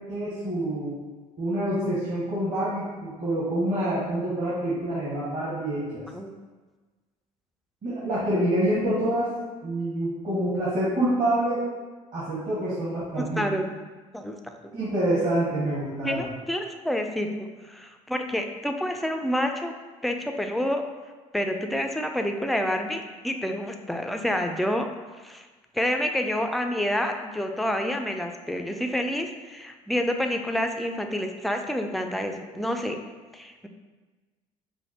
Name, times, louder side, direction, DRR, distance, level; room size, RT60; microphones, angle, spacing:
voice 1, 0.1-0.9 1.4-6.0 7.8-9.3 9.6-11.7 12.1-13.5 14.7-16.3, right 1 dB, 45° right, -9 dB, 1.3 m, -26 dB
voice 2, 13.2-13.7 14.1-14.7 16.0-19.7 20.0-20.8 21.3-24.9 25.2-25.5 25.7-33.0 33.3-33.7, equal, ahead, 4 dB, 0.3 m, -28 dB
5.1 x 2.0 x 2.8 m, 1.3 s
hypercardioid pair, 60°, 18 cm